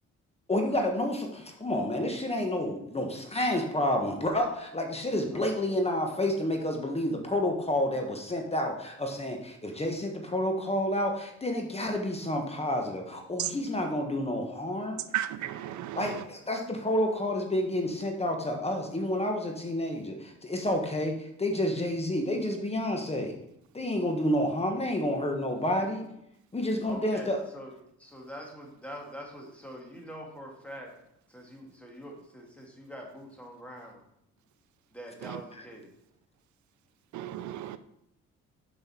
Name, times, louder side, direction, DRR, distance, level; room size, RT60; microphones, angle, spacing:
voice 1, 0.5-15.0 16.0-23.4 23.7-26.1 26.5-27.4, left 1 dB, 20° left, 1.3 m, -29 dB
voice 2, 15.1-16.3 35.2-35.4 37.1-37.8, right 12 dB, 75° right, 0.5 m, -34 dB
voice 3, 26.8-27.7 28.0-30.9 31.3-34.0 34.9-35.9, equal, 5° left, 2.2 m, -44 dB
7.7 x 5.6 x 4.4 m
cardioid pair, 90°, 30 cm